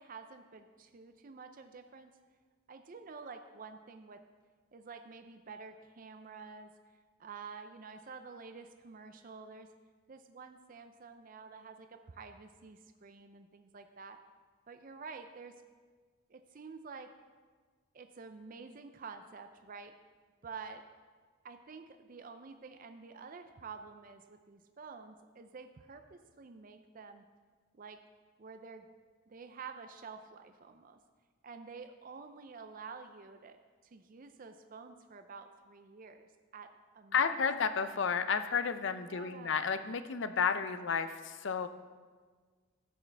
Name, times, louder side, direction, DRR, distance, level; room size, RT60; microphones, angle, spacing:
voice 1, 0.0-2.1 2.7-4.2 4.7-6.7 7.2-9.7 10.1-14.2 14.7-15.6 16.3-17.1 17.9-20.0 20.4-20.8 21.4-27.2 27.7-28.0 28.4-28.9 29.3-31.0 31.4-37.4 39.1-39.7, right 5 dB, 40° right, 7 dB, 0.4 m, -49 dB
voice 2, 37.1-41.7, left 6 dB, 55° left, 11 dB, 0.5 m, -32 dB
13.0 x 8.5 x 3.4 m, 1.5 s
head